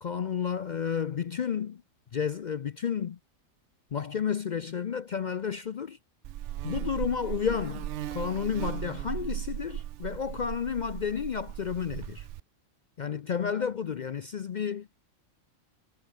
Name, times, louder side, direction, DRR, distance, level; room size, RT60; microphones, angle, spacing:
voice 1, 0.0-1.8 2.1-3.2 3.9-6.0 6.6-12.3 13.0-15.0, left 7 dB, 55° left, 0.5 m, -31 dB
Buzz, 6.2-12.4, right 12 dB, 70° right, 0.9 m, -37 dB
omnidirectional pair, 1.3 m